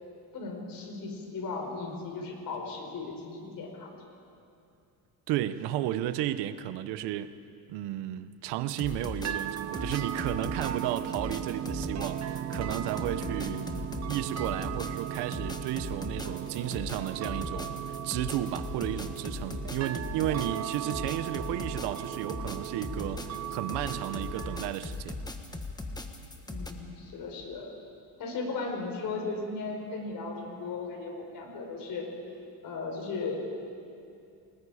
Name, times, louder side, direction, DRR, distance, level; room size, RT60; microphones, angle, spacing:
voice 1, 0.3-4.1 13.4-13.7 26.5-27.7 28.2-32.1 32.6-33.3, left 3 dB, 55° left, 1 dB, 4.9 m, -36 dB
voice 2, 5.3-7.3 7.7-13.6 14.1-25.2, right 12 dB, 85° right, 13 dB, 0.9 m, -33 dB
sound 1, 8.7-26.7, left 2 dB, 10° left, 1.4 m, -39 dB
sound 2, 9.2-24.7, right 10 dB, 40° right, 0.8 m, -37 dB
29.0 x 20.0 x 5.0 m, 2.6 s
cardioid pair, 135°, 40 cm